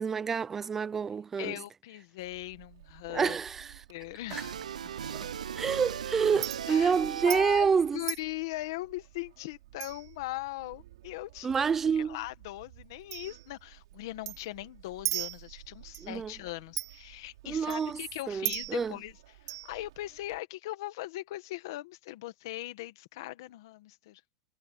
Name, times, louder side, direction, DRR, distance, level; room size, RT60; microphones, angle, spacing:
voice 1, 0.0-1.6 3.1-3.8 5.1-5.3 5.6-8.0 11.4-12.2 16.0-16.3 17.4-18.0 18.3-18.9, right 6 dB, 5° right, 0.5 m, -28 dB
voice 2, 1.4-3.4 3.9-4.5 4.8-4.9 6.7-6.9 7.3-11.7 12.0-19.1 19.4-24.2, left 17 dB, 30° left, 1.6 m, -40 dB
Chink clink, 2.2-20.4, right 15 dB, 35° right, 4.9 m, -43 dB
sound 1, 4.3-7.7, right 8 dB, 65° right, 0.9 m, -37 dB
hypercardioid pair, 180°, 4 cm